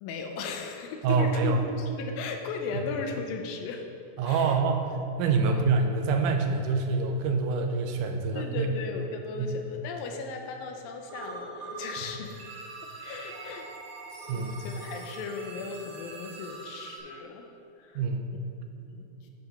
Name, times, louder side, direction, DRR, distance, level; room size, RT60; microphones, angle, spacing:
voice 1, 0.0-3.9 4.2-4.6 5.5-5.6 8.3-12.5 13.0-13.7 14.3-17.5 17.8-18.0 18.8-19.3, left 4 dB, 85° left, 3 dB, 2.6 m, -37 dB
voice 2, 1.0-1.6 4.2-4.9 5.2-8.7 9.4-9.5 14.3-14.6 18.0-18.3, right 4 dB, 75° right, 4 dB, 2.0 m, -26 dB
sound 1, 11.1-12.0 12.2-17.0, right 3 dB, 55° right, 3.1 m, -43 dB
8.0 x 5.7 x 5.8 m, 2.6 s
omnidirectional pair, 4.1 m